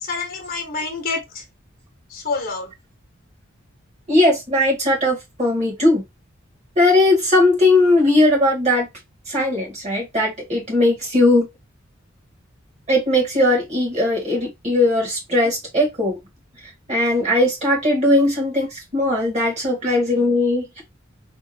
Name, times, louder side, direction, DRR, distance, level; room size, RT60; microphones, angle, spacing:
voice 1, 0.0-1.4 2.1-2.7, left 4 dB, 45° left, 1.0 m, -27 dB
voice 2, 4.1-6.0 6.7-8.9 9.3-11.5 12.9-16.2 16.9-20.8, left 1 dB, 35° right, 1.8 m, -18 dB
3.5 x 2.5 x 2.8 m
head